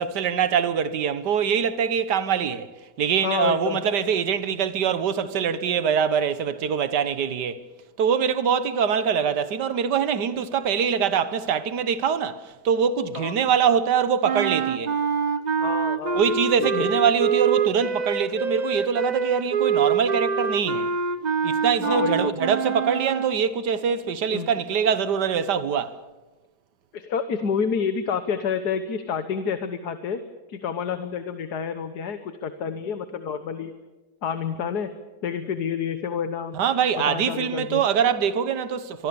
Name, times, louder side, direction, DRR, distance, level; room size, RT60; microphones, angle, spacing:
voice 1, 0.0-2.7 3.0-7.7 8.0-15.0 16.1-20.9 21.4-26.0 36.5-39.1, right 7 dB, 80° right, 1.8 m, -23 dB
voice 2, 3.2-3.8 13.2-13.3 15.6-16.9 21.8-22.3 24.3-24.5 26.9-30.2 30.5-33.7 34.2-34.9 35.2-36.6 37.1-37.8, left 6 dB, 70° left, 1.7 m, -28 dB
sound 1, 14.2-23.4, right 6 dB, 40° right, 0.6 m, -25 dB
24.5 x 23.5 x 7.0 m
omnidirectional pair, 1.8 m